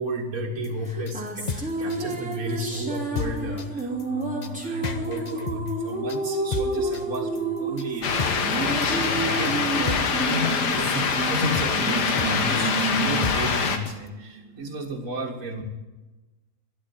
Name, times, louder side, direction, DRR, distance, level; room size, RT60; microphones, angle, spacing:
voice 1, 0.0-15.6, equal, 50° right, -2 dB, 2.0 m, -33 dB
sound 1, 0.6-14.1, left 5 dB, 40° left, 0.7 m, -34 dB
sound 2, 0.8-14.5, right 3 dB, 5° right, 2.6 m, -30 dB
sound 3, 8.0-13.8, left 5 dB, 80° left, 1.9 m, -24 dB
13.0 x 11.0 x 9.5 m, 1.1 s
omnidirectional pair, 1.7 m